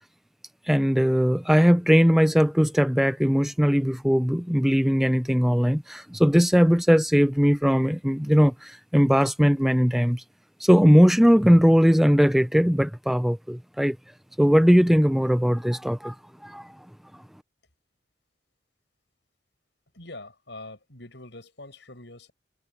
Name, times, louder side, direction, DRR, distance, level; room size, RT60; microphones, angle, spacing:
voice 1, 0.7-10.2 10.6-14.0 14.4-16.1 16.4-16.7, equal, ahead, 0.5 m, -19 dB
voice 2, 19.9-22.3, left 2 dB, 70° left, 7.3 m, -43 dB
head